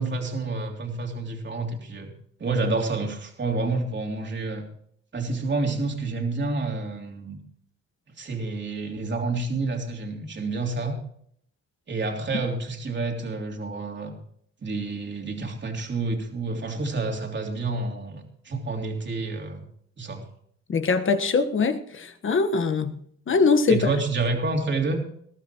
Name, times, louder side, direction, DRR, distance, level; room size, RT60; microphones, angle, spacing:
voice 1, 0.0-2.1 2.4-4.7 5.1-7.4 8.2-11.0 11.9-14.1 14.6-19.6 20.0-20.2 23.7-25.0, right 3 dB, 35° right, 3.2 m, -29 dB
voice 2, 20.7-23.0 23.3-23.9, left 4 dB, 40° left, 1.3 m, -22 dB
20.5 x 13.0 x 3.0 m
cardioid pair, 90°, 30 cm